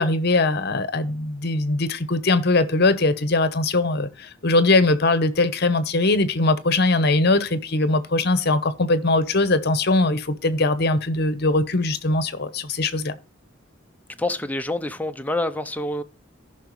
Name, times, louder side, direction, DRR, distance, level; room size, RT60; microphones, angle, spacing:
voice 1, 0.0-13.1, left 2 dB, 55° left, 0.9 m, -21 dB
voice 2, 14.2-16.0, left 1 dB, 10° left, 0.6 m, -27 dB
14.5 x 5.8 x 3.1 m
head